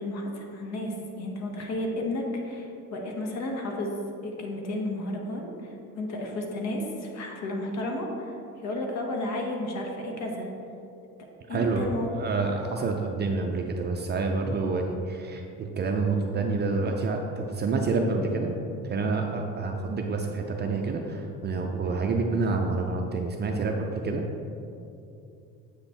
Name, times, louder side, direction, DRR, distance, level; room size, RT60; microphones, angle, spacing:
voice 1, 0.0-3.9 4.2-10.5 11.5-12.1, left 1 dB, 55° left, 1 dB, 0.9 m, -32 dB
voice 2, 11.5-18.5 18.8-24.2, right 3 dB, 35° right, 2 dB, 0.4 m, -28 dB
7.9 x 3.4 x 4.2 m, 2.7 s
cardioid pair, 120°, 32 cm